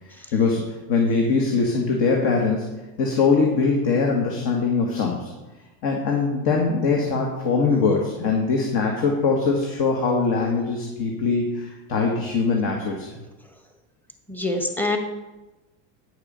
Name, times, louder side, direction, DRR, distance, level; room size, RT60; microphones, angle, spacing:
voice 1, 0.1-5.3 5.8-13.2, left 4 dB, 50° left, 0 dB, 1.8 m, -22 dB
voice 2, 14.3-15.0, left 2 dB, 5° left, 4 dB, 1.1 m, -25 dB
9.3 x 6.7 x 5.6 m, 1.1 s
supercardioid pair, 135°, 47 cm